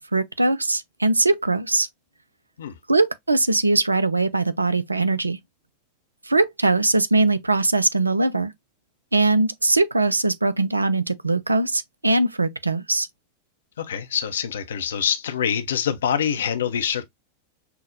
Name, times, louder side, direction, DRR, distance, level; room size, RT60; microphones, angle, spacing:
voice 1, 0.1-1.9 2.9-5.4 6.3-8.5 9.1-13.1, right 2 dB, 80° right, 0.3 m, -21 dB
voice 2, 13.8-17.0, left 8 dB, 65° left, 0.5 m, -25 dB
5.6 x 2.1 x 2.5 m
figure-of-eight pair, 90°, 0 cm